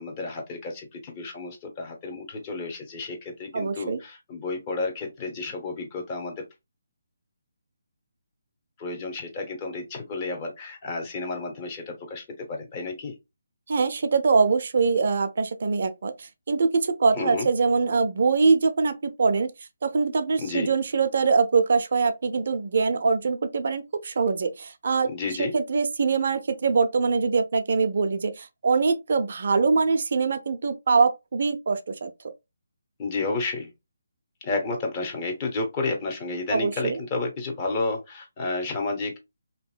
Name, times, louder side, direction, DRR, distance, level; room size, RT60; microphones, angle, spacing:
voice 1, 0.0-6.4 8.8-13.2 17.2-17.5 20.4-20.7 25.1-25.5 33.0-33.7 34.4-39.2, left 3 dB, 25° left, 0.8 m, -31 dB
voice 2, 3.5-4.0 13.7-19.5 19.8-25.1 25.4-32.1 36.5-37.0, right 4 dB, 55° right, 0.4 m, -23 dB
2.8 x 2.6 x 2.2 m
figure-of-eight pair, 155°, 0 cm